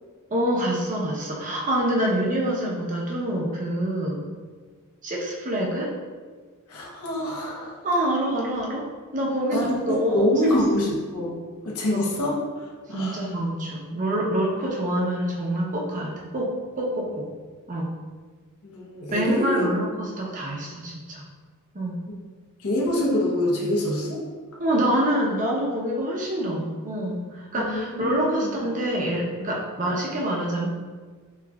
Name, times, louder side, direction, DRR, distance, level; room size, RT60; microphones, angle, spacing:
voice 1, 0.3-4.2 5.0-5.9 7.8-8.9 9.1-10.6 11.9-12.0 12.9-17.3 17.7-17.9 19.1-21.2 21.7-22.0 24.6-30.7, right 1 dB, 35° right, -2 dB, 0.8 m, -26 dB
voice 2, 6.7-7.8 9.5-9.7 10.1-13.3 18.6-19.7 22.1-22.2 22.6-24.2 27.5-28.5, left 1 dB, 75° left, -4 dB, 1.1 m, -26 dB
6.5 x 2.9 x 2.4 m, 1.5 s
head